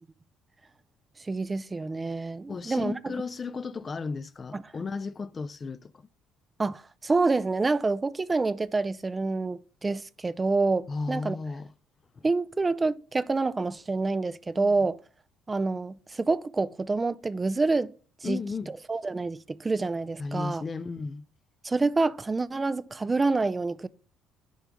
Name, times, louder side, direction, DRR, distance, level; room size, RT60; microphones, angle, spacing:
voice 1, 1.2-3.1 4.5-4.6 6.6-11.4 12.2-15.0 15.5-17.9 18.2-18.4 18.7-20.6 21.6-23.9, right 3 dB, 25° right, 0.5 m, -27 dB
voice 2, 2.5-6.1 10.9-11.7 12.2-12.3 14.6-14.7 18.2-18.7 20.2-21.3, left 4 dB, 35° left, 0.5 m, -34 dB
10.0 x 3.4 x 5.2 m
hypercardioid pair, 55°, 0 cm